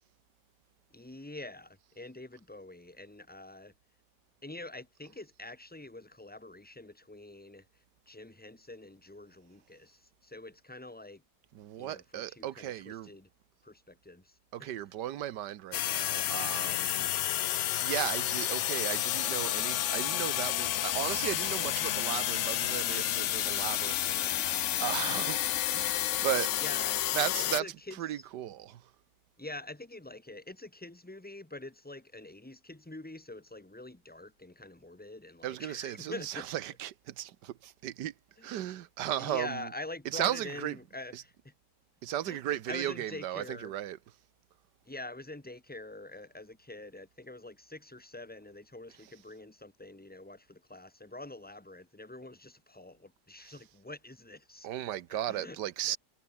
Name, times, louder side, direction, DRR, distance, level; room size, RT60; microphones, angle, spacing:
voice 1, 0.9-3.7 4.4-11.2 11.8-13.3 13.6-14.7 26.6-27.0 27.4-28.2 29.4-36.5 38.4-38.5 39.2-41.5 42.2-43.7 44.8-54.7 55.1-55.6 55.9-56.0, left 2 dB, 5° left, 1.3 m, -45 dB
voice 2, 11.5-13.1 14.5-17.1 17.8-26.6 27.1-27.7 28.0-28.9 35.4-38.1 38.4-39.7 40.1-40.8 41.1-41.2 42.0-44.0 53.4-53.5 54.6-56.0, right 12 dB, 85° right, 1.5 m, -36 dB
sound 1, 15.7-27.6, left 13 dB, 70° left, 0.7 m, -30 dB
omnidirectional pair, 1.8 m